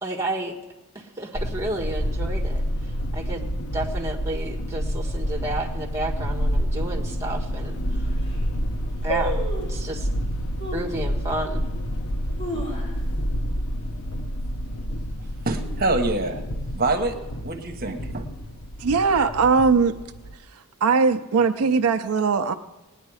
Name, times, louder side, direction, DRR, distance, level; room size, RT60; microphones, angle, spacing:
voice 1, 0.0-0.5 0.9-3.5 3.7-8.1 9.0-9.4 9.7-10.1 10.7-11.7, right 2 dB, 15° right, 0 dB, 1.7 m, -31 dB
sound 1, 1.3-20.4, equal, 70° left, 0.9 m, -28 dB
sound 2, 7.1-7.2 7.8-7.9 8.1-8.5 9.1-9.8 10.6-11.0 11.5-11.6 12.1-13.3 13.6-13.7 14.0-14.4 14.8-15.1 15.8-16.5 16.8-16.9, right 1 dB, 55° left, 3.7 m, -32 dB
voice 2, 15.4-16.4 16.7-17.2 17.4-18.3, right 2 dB, 45° right, 6 dB, 1.2 m, -25 dB
voice 3, 18.8-19.9 20.8-22.5, right 5 dB, 75° right, 8 dB, 0.5 m, -20 dB
19.0 x 9.9 x 4.8 m, 1.1 s
head